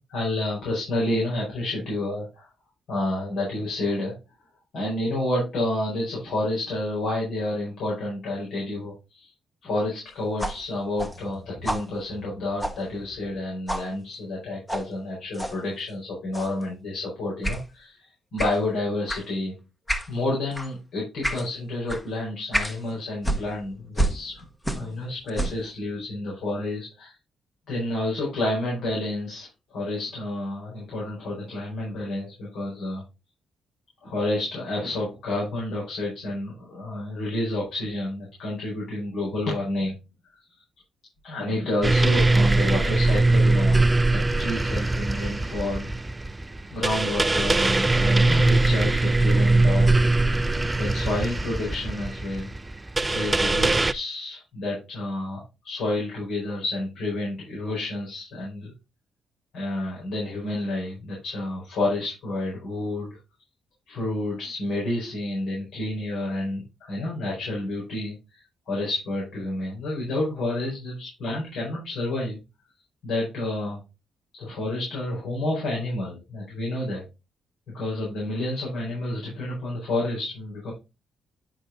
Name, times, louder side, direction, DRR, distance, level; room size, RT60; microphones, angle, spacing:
voice 1, 0.1-2.5 2.9-4.1 4.7-9.3 9.6-19.6 20.1-24.4 24.7-27.1 27.7-29.5 29.7-33.0 34.0-40.0 41.2-45.9 46.7-49.9 50.8-52.5 53.1-58.7 59.5-63.2 63.9-72.4 73.0-73.8 74.4-77.0 77.7-80.7, left 1 dB, 75° left, -4 dB, 4.8 m, -29 dB
sound 1, 10.4-13.4 13.7-13.9 14.7-14.9 15.3-15.6 16.3-16.6 17.4-17.6 18.4-18.6 19.1-19.3 19.9-20.1 20.5-20.7 21.2-21.5 21.9-22.0 22.5-22.8 23.2-25.0 25.3-25.7, right 1 dB, 10° left, 1.1 m, -30 dB
sound 2, 41.8-53.9, right 2 dB, 15° right, 0.4 m, -21 dB
9.8 x 5.1 x 3.8 m, 0.26 s
cardioid pair, 125°, 0 cm